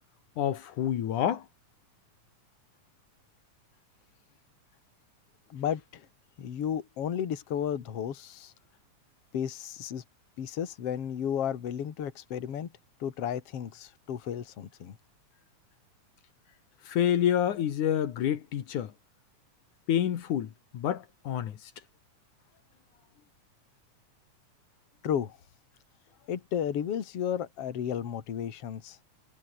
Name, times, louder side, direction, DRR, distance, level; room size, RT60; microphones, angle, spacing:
voice 1, 0.4-1.4 16.9-18.9 19.9-21.5, left 10 dB, 80° left, 3.1 m, -28 dB
voice 2, 5.5-6.0 6.4-8.5 9.3-10.0 10.4-12.7 13.0-15.0 25.0-25.4 26.3-29.0, left 9 dB, 55° left, 2.9 m, -33 dB
omnidirectional pair, 3.5 m